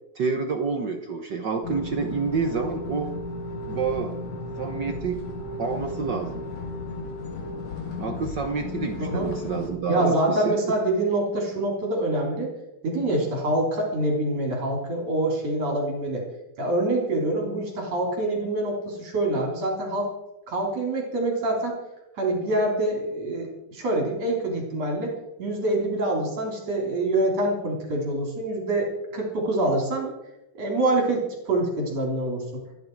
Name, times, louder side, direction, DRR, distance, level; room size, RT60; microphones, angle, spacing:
voice 1, 0.1-3.1 3.6-4.2 4.6-5.2 5.6-6.5 8.0-10.5, right 5 dB, 75° right, 5 dB, 1.0 m, -28 dB
sound 1, 1.6-9.7, left 2 dB, 55° left, 4.5 m, -34 dB
voice 2, 9.0-9.3 9.9-12.5 12.8-16.2 16.6-20.1 20.5-21.8 22.2-30.1 30.6-32.4, right 1 dB, 55° right, 0 dB, 4.6 m, -25 dB
27.0 x 11.0 x 4.7 m, 0.95 s
omnidirectional pair, 3.7 m